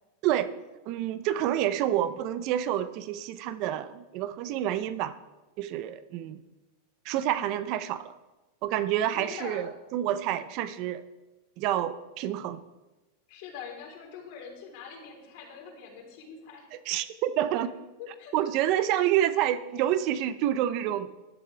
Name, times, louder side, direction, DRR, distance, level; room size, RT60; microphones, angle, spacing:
voice 1, 0.9-5.1 5.6-6.4 7.0-8.1 8.6-11.0 11.6-12.6 16.9-17.7 18.3-21.1, right 12 dB, 50° right, 14 dB, 0.7 m, -28 dB
voice 2, 9.1-9.7 13.3-16.7 18.0-18.5, left 6 dB, 60° left, 0 dB, 3.9 m, -43 dB
14.0 x 12.0 x 3.4 m, 1.1 s
supercardioid pair, 130°, 0 cm